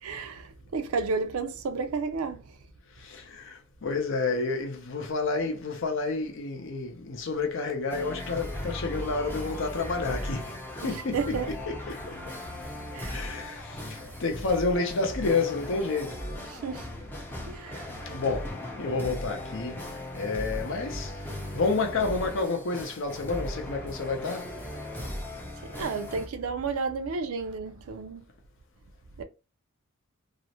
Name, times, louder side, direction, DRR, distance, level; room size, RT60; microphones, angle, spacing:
voice 1, 0.0-2.6 10.8-11.5 12.5-13.3 16.5-17.1 17.5-18.1 25.6-28.2 29.2-29.3, right 4 dB, 85° right, 0.4 m, -32 dB
voice 2, 3.0-10.6 10.8-12.2 13.1-16.2 18.1-19.8 20.1-21.2 21.5-24.6, left 3 dB, 60° left, 0.6 m, -30 dB
sound 1, 7.9-26.3, left 1 dB, 10° left, 0.5 m, -38 dB
2.4 x 2.0 x 2.8 m
head